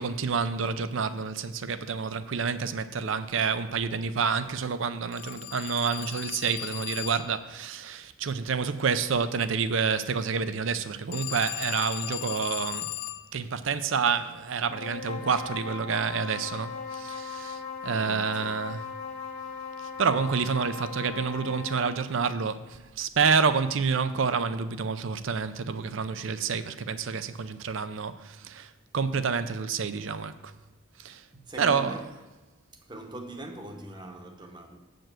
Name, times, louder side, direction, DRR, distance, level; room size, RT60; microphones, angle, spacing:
voice 1, 0.0-12.9 13.3-18.8 19.8-30.5 31.0-31.2 31.6-32.0, right 5 dB, 70° right, 0.5 m, -28 dB
Telephone, 5.1-7.4 11.1-13.3, left 15 dB, 55° left, 0.3 m, -37 dB
sound 1, 14.6-22.0, left 5 dB, 90° left, 1.7 m, -38 dB
voice 2, 17.8-18.6 31.3-32.1 32.7-34.8, right 1 dB, 20° right, 0.8 m, -42 dB
7.7 x 5.2 x 7.4 m
head